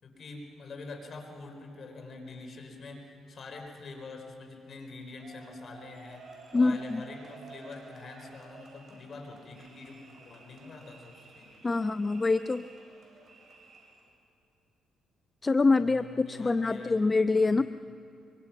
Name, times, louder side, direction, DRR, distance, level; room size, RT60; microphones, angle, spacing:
voice 1, 0.0-11.9 15.8-17.0 17.5-17.6, left 3 dB, 50° left, 3 dB, 4.4 m, -45 dB
sound 1, 5.2-14.1, right 3 dB, 40° right, 7.3 m, -53 dB
voice 2, 6.5-7.0 11.6-12.6 15.4-17.6, left 3 dB, 25° left, 12 dB, 0.5 m, -25 dB
24.0 x 24.0 x 6.0 m, 2.8 s
cardioid pair, 90°, 0 cm